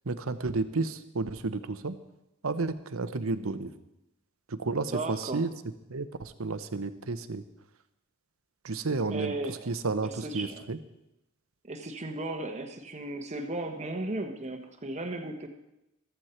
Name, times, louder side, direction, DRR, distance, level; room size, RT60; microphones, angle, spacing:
voice 1, 0.0-2.0 2.4-3.7 4.5-5.5 5.9-7.4 8.6-9.3 9.7-10.8, right 3 dB, 80° right, 12 dB, 0.9 m, -31 dB
voice 2, 4.9-5.4 9.1-9.7 10.0-10.6 11.7-15.5, right 2 dB, 35° right, 5 dB, 1.1 m, -35 dB
14.5 x 14.0 x 4.5 m, 0.90 s
head